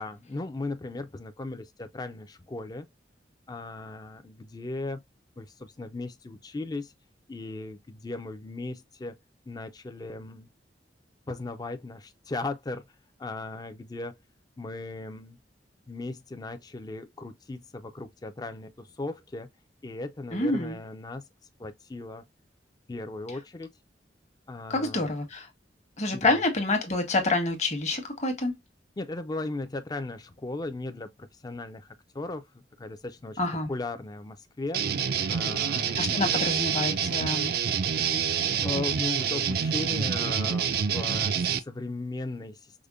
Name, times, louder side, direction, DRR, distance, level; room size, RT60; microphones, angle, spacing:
voice 1, 0.0-2.9 3.5-5.0 5.4-6.9 7.3-9.2 9.5-10.5 11.3-12.8 13.2-14.2 14.6-15.4 15.9-19.5 19.8-21.2 21.6-22.2 22.9-23.7 24.5-25.1 26.1-26.4 29.0-32.4 32.8-33.4 33.7-34.8 35.3-36.4 38.5-42.9, left 2 dB, 20° left, 0.4 m, -37 dB
voice 2, 20.3-20.8 24.7-25.5 26.0-28.5 33.4-33.7 35.9-37.5, left 2 dB, 40° left, 1.0 m, -27 dB
sound 1, 34.7-41.6, right 7 dB, 55° right, 0.4 m, -27 dB
5.0 x 2.1 x 2.3 m
head